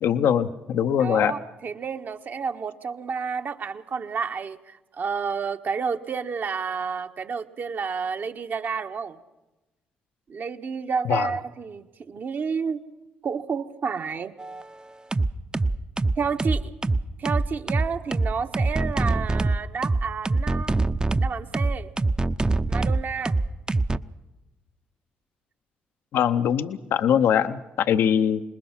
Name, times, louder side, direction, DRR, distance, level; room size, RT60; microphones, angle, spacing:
voice 1, 0.0-1.3 11.0-11.3 26.1-28.4, left 9 dB, 70° left, 11 dB, 0.8 m, -22 dB
voice 2, 1.0-9.2 10.3-12.8 13.2-14.3 16.2-16.7 17.2-20.9 21.2-21.9 22.7-23.3, right 5 dB, 55° right, 7 dB, 1.4 m, -30 dB
sound 1, 14.4-14.7 15.1-24.0, right 2 dB, 20° right, 0.7 m, -23 dB
26.5 x 20.5 x 6.0 m, 1.0 s
hypercardioid pair, 50°, 4 cm